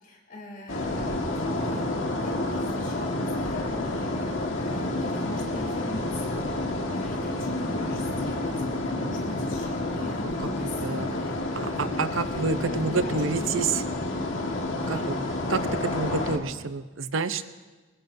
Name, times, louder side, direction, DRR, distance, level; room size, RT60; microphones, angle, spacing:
voice 1, 0.0-8.5 8.8-11.9 12.3-12.4 12.7-14.0 14.9-15.1 17.3-17.5, left 1 dB, 45° left, -1 dB, 3.5 m, -41 dB
sound 1, 0.7-16.4, left 2 dB, 75° left, 1.6 m, -29 dB
voice 2, 10.8-11.1 11.5-13.8 14.9-15.1 15.5-17.4, right 4 dB, 80° right, 11 dB, 0.7 m, -28 dB
22.0 x 21.0 x 2.7 m, 1.2 s
head